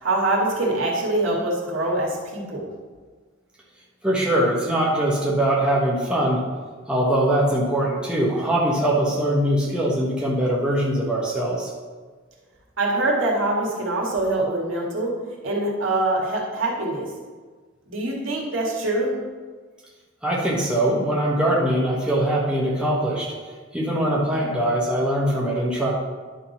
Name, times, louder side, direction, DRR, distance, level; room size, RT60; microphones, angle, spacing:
voice 1, 0.0-2.7 12.8-15.1 15.4-17.1 17.9-19.1, right 2 dB, 80° right, -3 dB, 2.1 m, -24 dB
voice 2, 4.0-6.4 6.9-11.7 20.2-23.3 23.7-25.9, right 1 dB, 5° right, -5 dB, 1.3 m, -22 dB
10.5 x 3.9 x 5.8 m, 1.4 s
head